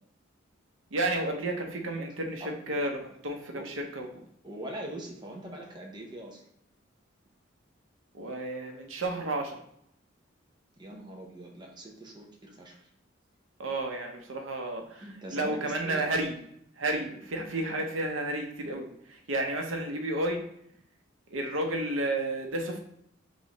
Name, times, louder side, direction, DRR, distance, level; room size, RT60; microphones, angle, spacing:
voice 1, 0.9-3.0 3.2-4.2 8.1-9.6 13.6-16.4 16.8-20.4 21.3-22.8, right 1 dB, 85° right, 3 dB, 0.8 m, -32 dB
voice 2, 4.4-6.4 10.8-12.9 15.0-16.1, right 1 dB, 25° right, 0 dB, 0.7 m, -42 dB
3.6 x 3.1 x 4.1 m, 0.70 s
head